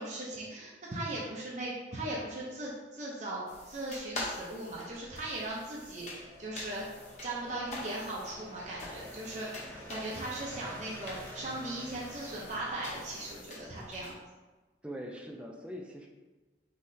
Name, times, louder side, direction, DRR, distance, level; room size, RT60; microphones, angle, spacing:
voice 1, 0.0-6.8 7.2-14.2, right 1 dB, 40° right, -5 dB, 0.7 m, -38 dB
sound 1, 3.5-14.1, left 2 dB, 40° left, 0.8 m, -46 dB
sound 2, 4.9-13.4, equal, 10° left, 1.0 m, -50 dB
voice 2, 14.8-16.1, equal, 5° right, 0 dB, 0.4 m, -42 dB
5.6 x 3.1 x 2.7 m, 1.2 s
head